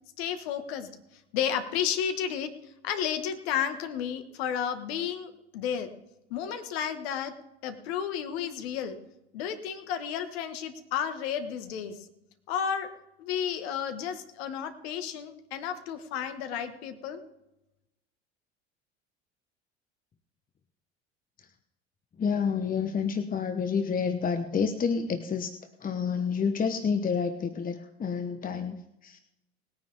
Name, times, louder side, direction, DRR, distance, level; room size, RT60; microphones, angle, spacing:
voice 1, 0.2-0.9 1.3-5.9 6.3-7.3 7.6-9.0 9.3-12.0 12.5-12.9 13.2-17.2, left 8 dB, 65° left, 9 dB, 1.7 m, -32 dB
voice 2, 22.2-25.5 25.8-29.2, left 6 dB, 25° left, 9 dB, 1.0 m, -29 dB
20.0 x 9.6 x 3.6 m, 0.89 s
figure-of-eight pair, 65°, 34 cm